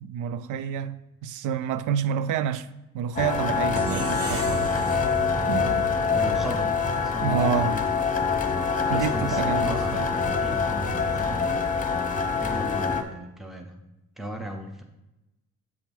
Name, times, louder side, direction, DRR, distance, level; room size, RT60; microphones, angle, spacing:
voice 1, 0.0-2.7 2.9-4.7 5.5-5.9 7.2-7.8 8.9-10.1, right 8 dB, 85° right, 0.5 m, -28 dB
sound 1, 3.2-13.0, left 5 dB, 25° left, 0.9 m, -25 dB
sound 2, 3.7-6.9, right 3 dB, 50° right, 1.3 m, -37 dB
voice 2, 6.1-6.8 7.0-7.8 8.9-11.6 12.4-13.8 14.2-14.8, equal, ahead, 0.8 m, -36 dB
7.9 x 5.8 x 3.5 m
cardioid pair, 90°, 30 cm